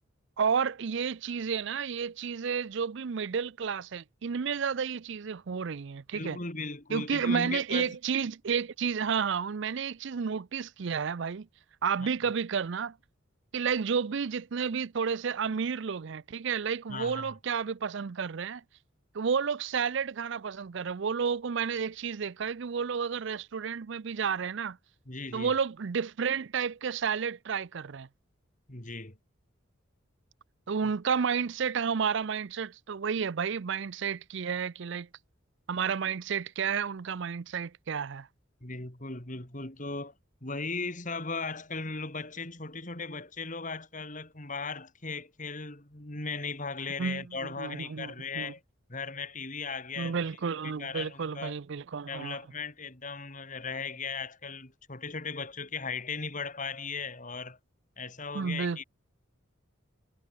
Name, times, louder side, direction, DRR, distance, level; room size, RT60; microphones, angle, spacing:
voice 1, 0.4-6.4 6.9-11.5 11.8-13.0 13.5-18.6 19.1-24.8 25.3-28.1 30.7-35.1 35.7-38.3 47.0-47.2 47.6-48.5 50.0-52.4 58.3-58.8, right 6 dB, 60° right, 0.5 m, -31 dB
voice 2, 6.1-8.0 12.0-12.1 16.9-17.3 25.1-25.5 28.7-29.2 38.6-40.1 40.4-48.6 48.9-50.3 50.8-51.6 52.1-57.6 58.0-58.8, left 4 dB, 40° left, 3.1 m, -37 dB
head